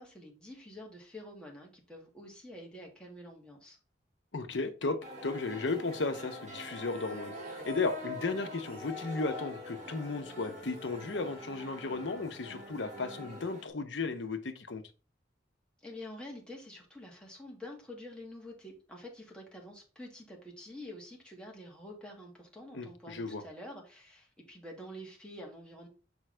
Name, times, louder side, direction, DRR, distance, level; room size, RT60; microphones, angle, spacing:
voice 1, 0.0-3.8 15.8-25.9, left 1 dB, 5° left, 1.7 m, -47 dB
voice 2, 4.3-14.8 22.7-23.4, left 3 dB, 85° left, 0.8 m, -35 dB
sound 1, 5.0-13.7, left 1 dB, 40° right, 2.3 m, -44 dB
6.2 x 5.2 x 3.3 m
head